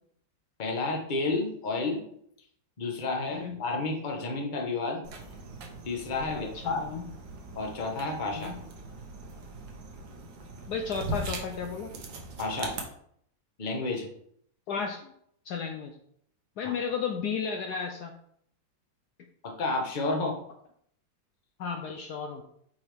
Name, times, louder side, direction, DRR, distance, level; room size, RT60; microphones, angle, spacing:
voice 1, 0.6-2.0 2.8-5.0 5.8-6.8 7.5-8.5 12.4-12.8 13.6-14.1 19.4-20.4, left 3 dB, 30° left, 2 dB, 1.1 m, -31 dB
sound 1, 5.0-12.8, right 2 dB, 80° right, 1.8 m, -41 dB
voice 2, 6.3-7.1 8.4-8.6 10.7-11.9 14.7-15.1 15.4-16.0 16.6-18.1 21.6-22.4, left 6 dB, 70° left, 4 dB, 1.1 m, -33 dB
7.9 x 4.7 x 3.5 m, 0.67 s
omnidirectional pair, 2.0 m